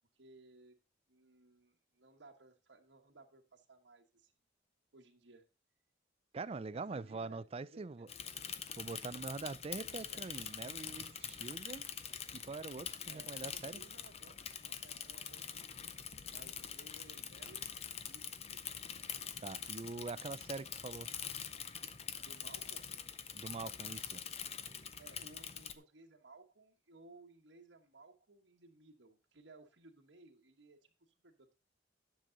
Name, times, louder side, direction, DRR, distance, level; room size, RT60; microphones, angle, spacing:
voice 1, 0.1-0.7 1.1-4.3 4.9-5.5 6.4-8.1 9.8-10.4 13.1-17.8 18.0-18.8 22.2-22.9 25.0-30.8 31.2-31.5, right 3 dB, 80° right, 1.3 m, -60 dB
voice 2, 6.3-8.1 8.8-11.9 12.3-13.8 19.4-21.1 23.3-24.2, right 3 dB, 35° right, 0.4 m, -44 dB
Bicycle / Mechanisms, 8.1-25.7, left 8 dB, 35° left, 0.6 m, -45 dB
10.5 x 7.0 x 3.9 m
head